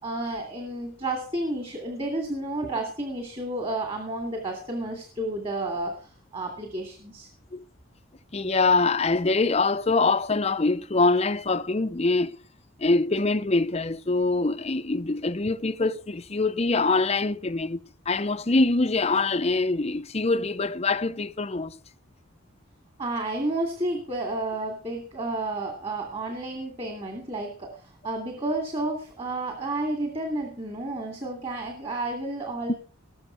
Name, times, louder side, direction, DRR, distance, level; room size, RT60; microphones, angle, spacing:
voice 1, 0.0-7.3 23.0-32.7, right 2 dB, 25° right, 2.6 m, -31 dB
voice 2, 8.3-12.4 12.8-21.8 32.7-32.8, left 3 dB, 30° left, 0.6 m, -24 dB
19.5 x 7.2 x 5.8 m
head